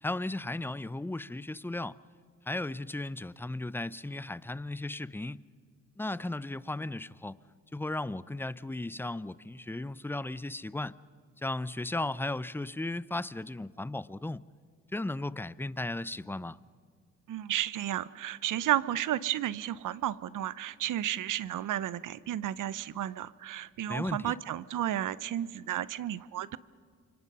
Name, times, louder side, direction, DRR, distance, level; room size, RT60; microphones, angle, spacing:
voice 1, 0.0-2.0 2.5-5.4 6.0-7.4 7.7-11.0 11.4-14.4 14.9-16.6 23.9-24.3, left 2 dB, 5° left, 0.6 m, -35 dB
voice 2, 17.3-26.6, right 12 dB, 65° right, 0.8 m, -32 dB
28.5 x 25.0 x 5.6 m
supercardioid pair, 65°, 34 cm